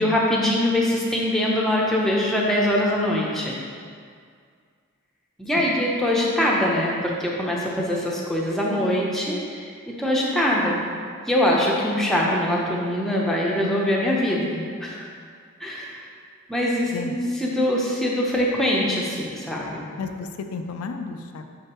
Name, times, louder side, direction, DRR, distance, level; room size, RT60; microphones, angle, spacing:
voice 1, 0.0-3.5 5.4-10.8 11.3-15.1 15.6-16.0 16.5-19.9, left 1 dB, ahead, -4 dB, 0.7 m, -23 dB
voice 2, 16.8-17.2 20.0-21.5, left 4 dB, 85° left, 6 dB, 0.4 m, -33 dB
6.4 x 5.5 x 3.0 m, 2.1 s
head